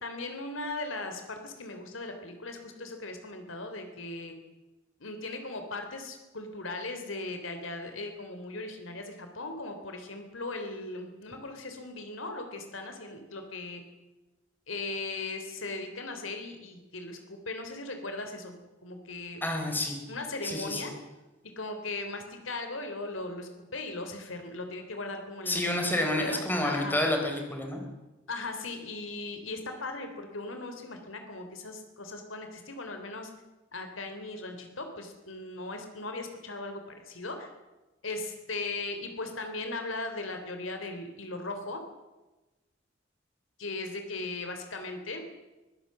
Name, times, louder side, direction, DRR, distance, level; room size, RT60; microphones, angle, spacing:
voice 1, 0.0-4.3 5.0-13.8 14.7-18.5 18.8-19.4 20.1-20.9 21.6-27.0 28.3-33.3 33.7-36.8 37.1-37.5 38.0-41.8 43.6-45.2, left 2 dB, 85° left, 6 dB, 3.3 m, -38 dB
voice 2, 19.4-20.0 20.4-20.9 25.5-27.8, left 1 dB, 10° left, 3 dB, 4.2 m, -29 dB
23.5 x 17.0 x 7.6 m, 1.1 s
head